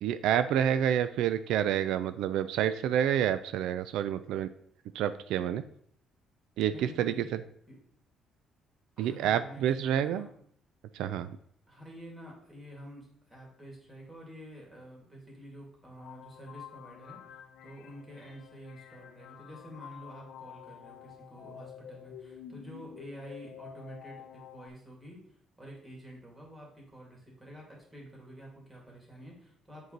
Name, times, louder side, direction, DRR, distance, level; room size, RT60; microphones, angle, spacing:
voice 1, 0.0-4.5 4.9-5.6 6.6-7.1 9.0-10.3 10.9-11.4, right 10 dB, 90° right, 12 dB, 0.4 m, -28 dB
voice 2, 6.7-7.3 7.7-7.8 9.0-10.3 11.7-29.9, equal, 15° right, -2 dB, 2.3 m, -49 dB
sound 1, 16.0-24.7, left 9 dB, 65° left, 0.6 m, -49 dB
7.7 x 4.7 x 3.9 m, 0.64 s
cardioid pair, 155°, 0 cm